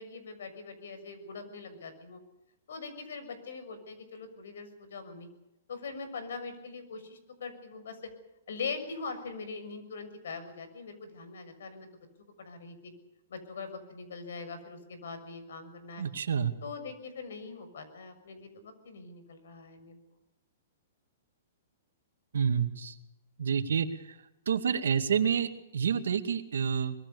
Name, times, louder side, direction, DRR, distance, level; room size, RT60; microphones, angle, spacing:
voice 1, 0.0-2.2 2.7-5.3 5.7-8.0 8.5-11.9 12.4-12.9 13.3-16.0 16.6-20.0, left 4 dB, 80° left, 10 dB, 6.6 m, -42 dB
voice 2, 16.0-16.5 22.3-22.9 23.4-23.9 24.5-26.9, right 7 dB, 90° right, 8 dB, 2.4 m, -28 dB
24.0 x 21.5 x 6.9 m, 0.89 s
hypercardioid pair, 155°, 0 cm